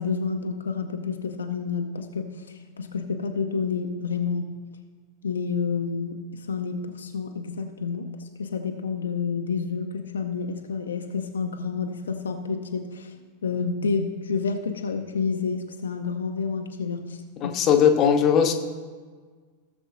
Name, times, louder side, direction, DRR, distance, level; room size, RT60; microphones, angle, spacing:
voice 1, 0.0-4.6 5.2-13.1 13.4-17.6, left 5 dB, 70° left, 5 dB, 0.6 m, -29 dB
voice 2, 17.4-18.5, left 8 dB, 35° left, 6 dB, 0.9 m, -19 dB
16.5 x 7.0 x 2.6 m, 1.5 s
figure-of-eight pair, 90°, 0 cm